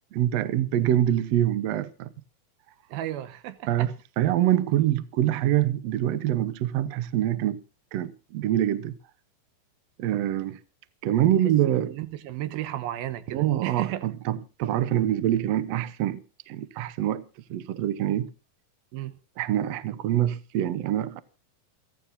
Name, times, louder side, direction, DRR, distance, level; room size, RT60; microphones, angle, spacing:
voice 1, 0.1-2.1 3.7-7.6 7.9-8.9 10.0-10.6 11.0-11.9 13.3-17.2 17.5-18.3 19.4-21.2, right 12 dB, 70° right, 1.5 m, -25 dB
voice 2, 2.9-3.9 11.8-14.0 18.9-19.1, right 13 dB, 90° right, 3.0 m, -33 dB
28.5 x 11.5 x 2.7 m
omnidirectional pair, 4.1 m